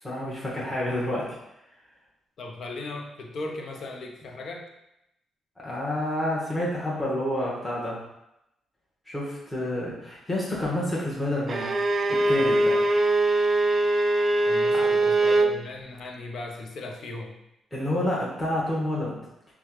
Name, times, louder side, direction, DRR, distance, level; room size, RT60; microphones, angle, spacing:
voice 1, 0.0-1.4 5.6-8.0 9.1-11.7 12.1-12.8 17.7-19.2, left 1 dB, 15° left, -6 dB, 1.5 m, -29 dB
voice 2, 2.4-4.6 14.5-17.3, left 2 dB, 65° left, 2 dB, 0.7 m, -37 dB
Bowed string instrument, 11.5-15.6, right 2 dB, 40° right, 0.4 m, -22 dB
6.1 x 2.4 x 3.2 m, 0.86 s
cardioid pair, 70°, 0 cm